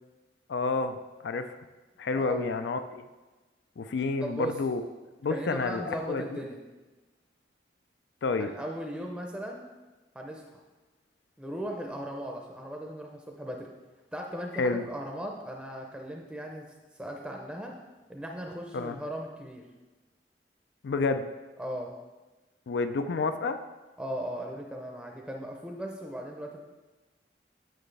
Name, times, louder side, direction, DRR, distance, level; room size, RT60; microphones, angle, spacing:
voice 1, 0.5-1.0 1.2-1.6 2.0-3.0 3.8-4.8 5.2-6.2 8.2-8.5 14.6-14.8 18.7-19.0 20.8-21.3 22.7-23.6, left 3 dB, 75° left, 9 dB, 0.4 m, -29 dB
voice 2, 4.2-4.6 5.3-6.6 8.3-9.6 10.1-10.6 11.4-13.7 14.1-16.7 16.9-17.7 18.1-19.6 21.6-21.9 24.0-26.6, equal, 5° right, 0 dB, 0.6 m, -37 dB
9.0 x 6.2 x 3.3 m, 1.2 s
head